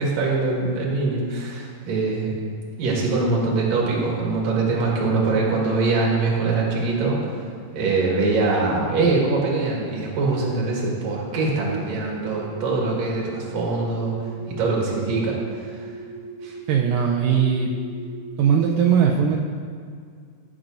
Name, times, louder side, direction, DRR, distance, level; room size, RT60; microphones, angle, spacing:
voice 1, 0.0-2.3 2.8-7.3 7.7-14.1 14.5-15.8 16.4-16.5, right 3 dB, 55° right, -3 dB, 2.6 m, -23 dB
sound 1, 12.3-18.7, right 4 dB, 50° left, 2.9 m, -39 dB
voice 2, 16.7-17.7 18.4-19.4, right 7 dB, 80° right, 0 dB, 2.2 m, -19 dB
15.0 x 7.6 x 2.6 m, 2.2 s
omnidirectional pair, 4.1 m